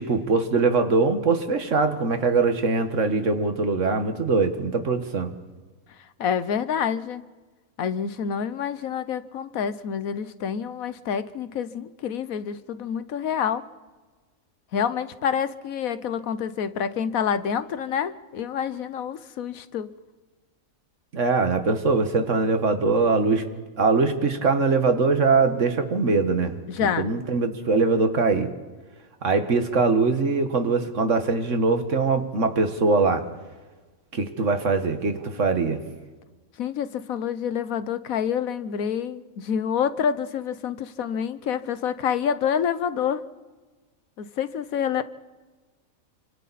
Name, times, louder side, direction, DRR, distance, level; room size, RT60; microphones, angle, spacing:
voice 1, 0.0-5.3 21.1-23.4 23.8-28.5 29.2-33.2 34.1-35.8, right 4 dB, 60° right, 8 dB, 1.9 m, -22 dB
voice 2, 6.2-7.2 7.8-13.6 14.7-19.9 26.7-27.1 36.6-43.2 44.2-45.0, left 8 dB, 85° left, 13 dB, 1.3 m, -27 dB
28.5 x 25.5 x 4.2 m, 1.3 s
omnidirectional pair, 1.4 m